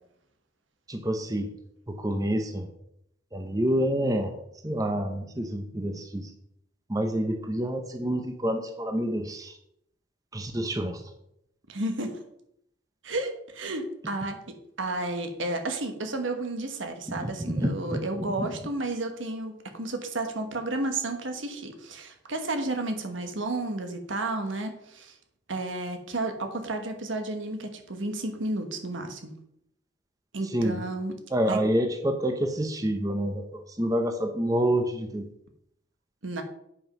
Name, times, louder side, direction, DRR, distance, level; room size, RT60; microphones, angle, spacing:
voice 1, 0.9-1.5 1.9-2.7 3.3-4.3 4.6-6.3 6.9-9.5 10.3-11.0 17.1-18.0 18.4-18.5 30.5-30.8 31.3-35.3, right 1 dB, 20° right, 5 dB, 0.7 m, -28 dB
voice 2, 11.7-12.2 13.0-14.4 14.8-25.1 25.5-29.4 30.3-31.1 31.5-31.6 36.2-36.4, right 2 dB, 80° right, 5 dB, 1.3 m, -32 dB
8.5 x 5.4 x 5.3 m, 0.76 s
head